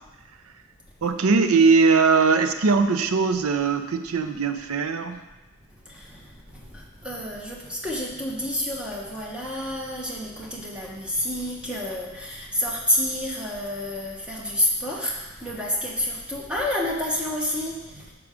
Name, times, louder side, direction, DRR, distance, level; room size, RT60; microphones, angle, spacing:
voice 1, 1.0-5.2, right 4 dB, 80° right, 8 dB, 0.5 m, -20 dB
voice 2, 5.9-18.1, left 1 dB, 5° right, -4 dB, 1.0 m, -29 dB
7.1 x 4.7 x 4.9 m, 1.1 s
head